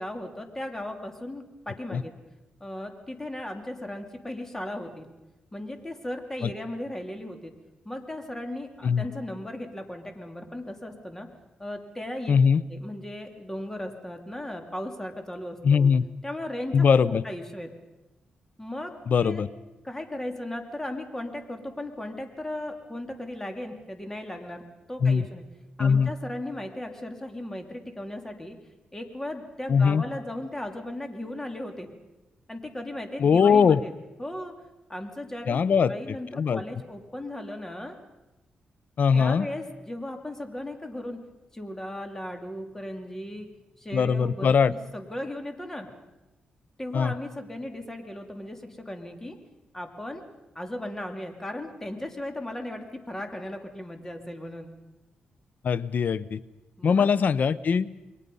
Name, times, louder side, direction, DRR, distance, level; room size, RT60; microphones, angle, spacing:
voice 1, 0.0-2.1 2.6-5.1 5.5-7.5 7.8-11.3 11.6-12.3 12.7-15.9 16.2-16.7 17.1-17.7 18.6-18.9 19.2-19.4 19.8-25.4 25.8-28.6 28.9-31.9 32.5-33.9 34.2-34.5 34.9-37.9 39.1-41.2 41.5-43.5 43.8-45.9 46.8-49.3 49.7-50.2 50.5-54.7 56.8-57.1, left 1 dB, 15° left, 4 dB, 3.0 m, -36 dB
voice 2, 12.3-12.6 15.6-16.0 16.7-17.2 19.1-19.5 25.0-25.3 25.8-26.1 29.7-30.0 33.2-33.8 35.5-35.9 36.3-36.6 39.0-39.5 43.9-44.7 46.9-47.1 55.6-56.4 56.8-57.9, left 6 dB, 60° left, 18 dB, 0.7 m, -21 dB
28.0 x 22.5 x 5.5 m, 1.0 s
cardioid pair, 90°, 3 cm